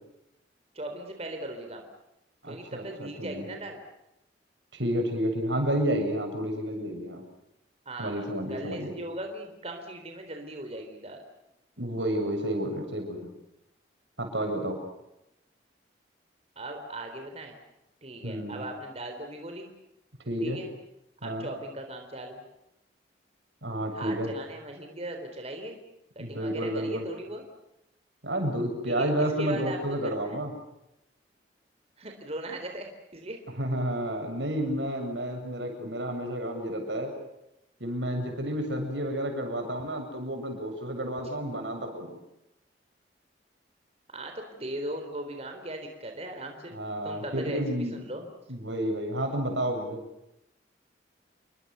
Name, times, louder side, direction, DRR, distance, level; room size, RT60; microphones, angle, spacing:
voice 1, 0.7-1.9 2.5-3.8 7.9-11.2 16.6-17.6 18.0-19.7 20.4-20.7 21.2-22.4 23.9-25.8 26.2-27.4 28.8-30.4 32.0-33.4 44.1-46.7 47.0-48.2, right 1 dB, 35° right, 4 dB, 3.9 m, -38 dB
voice 2, 2.4-3.4 4.7-7.2 8.0-8.9 11.8-13.3 14.2-14.8 18.2-18.6 20.3-20.6 21.2-21.5 23.6-24.3 26.2-27.0 28.2-30.5 33.6-37.1 37.8-42.2 46.7-48.1 48.5-50.0, right 1 dB, 80° right, 4 dB, 7.6 m, -30 dB
29.5 x 24.0 x 6.9 m, 0.87 s
head